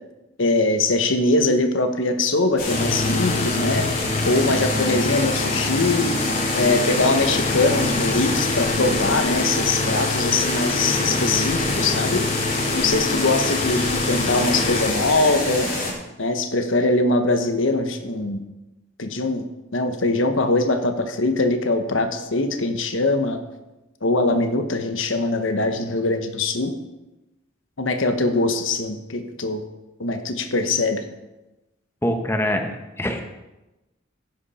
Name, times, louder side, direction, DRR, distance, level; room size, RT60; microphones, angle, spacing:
voice 1, 0.4-3.9 4.2-6.2 6.5-12.2 12.7-15.7 16.2-18.4 19.0-19.5 19.7-23.4 24.0-26.7 27.8-29.6 30.0-31.0, left 2 dB, 75° left, 7 dB, 1.2 m, -22 dB
sound 1, 2.6-15.9, left 2 dB, 50° left, 4.5 m, -26 dB
sound 2, 2.7-14.9, left 3 dB, 35° left, 0.6 m, -26 dB
voice 2, 32.0-33.2, left 1 dB, 10° left, 4 dB, 1.2 m, -24 dB
15.0 x 11.0 x 4.3 m, 1.0 s
head